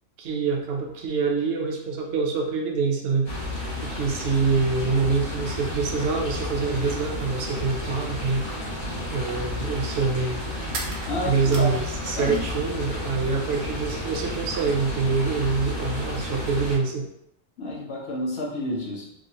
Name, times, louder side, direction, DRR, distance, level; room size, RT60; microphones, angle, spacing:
voice 1, 0.2-3.3 3.8-8.5 9.1-10.4 11.2-17.1, right 4 dB, 65° right, 2 dB, 0.8 m, -25 dB
sound 1, 3.2-16.8, left 1 dB, 90° left, 1.5 m, -32 dB
sound 2, 10.7-12.6 12.9-13.8, right 4 dB, 85° right, 1.0 m, -38 dB
voice 2, 11.1-11.7 12.1-12.4 17.6-19.1, equal, 60° left, -3 dB, 1.0 m, -30 dB
3.0 x 2.3 x 2.7 m, 0.77 s
omnidirectional pair, 1.3 m